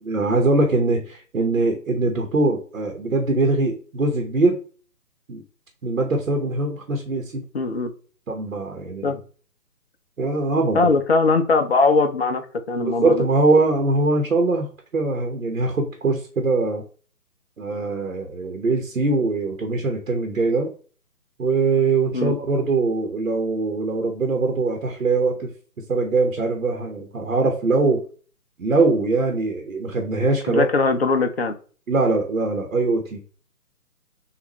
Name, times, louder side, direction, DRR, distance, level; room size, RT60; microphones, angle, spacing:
voice 1, 0.1-4.6 5.3-5.4 5.8-7.4 8.3-9.2 10.2-10.9 12.8-14.7 14.9-16.8 17.6-20.7 21.4-25.5 25.9-28.0 28.6-30.7 31.9-33.2, right 3 dB, 60° right, 3 dB, 1.1 m, -22 dB
voice 2, 7.5-7.9 9.0-9.2 10.7-13.2 22.1-22.3 30.5-31.6, left 3 dB, 45° left, 7 dB, 0.6 m, -20 dB
6.7 x 2.5 x 3.0 m, 0.39 s
figure-of-eight pair, 140°, 45 cm